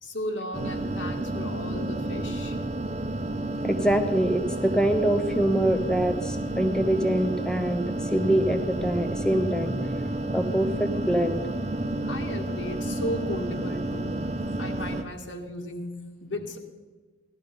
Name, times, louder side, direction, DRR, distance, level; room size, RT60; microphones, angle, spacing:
voice 1, 0.0-2.6 12.1-14.3 14.6-16.6, left 1 dB, 75° left, 3 dB, 2.0 m, -35 dB
sound 1, 0.5-15.0, right 1 dB, 35° right, 0.7 m, -30 dB
voice 2, 3.6-9.9 10.3-11.4, right 1 dB, 5° left, 6 dB, 0.6 m, -25 dB
16.5 x 12.0 x 5.3 m, 1.3 s
head